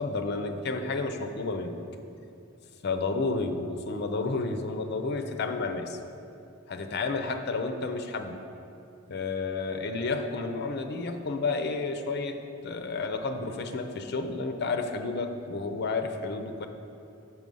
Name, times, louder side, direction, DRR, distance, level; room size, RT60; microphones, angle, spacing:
voice 1, 0.0-1.8 2.8-6.0 6.7-8.4 9.1-12.4 12.6-16.7, left 3 dB, 55° left, 7 dB, 0.5 m, -31 dB
6.3 x 5.7 x 5.4 m, 2.7 s
head